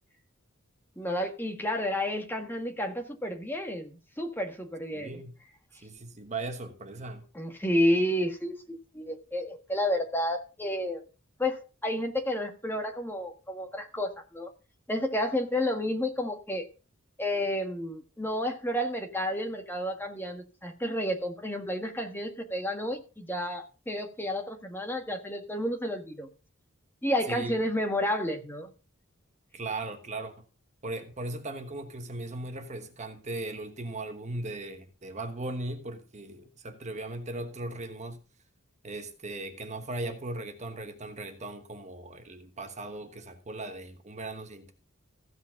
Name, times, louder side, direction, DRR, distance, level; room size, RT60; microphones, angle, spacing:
voice 1, 1.0-5.1 7.4-8.5 8.9-11.0 11.4-14.5 14.9-16.7 17.2-26.3 27.0-28.7, left 1 dB, 10° left, 1.6 m, -31 dB
voice 2, 4.9-5.4 5.8-7.2 27.3-27.6 29.5-30.3 30.8-38.2 38.8-44.7, right 2 dB, 35° right, 1.2 m, -38 dB
15.5 x 5.3 x 5.8 m
head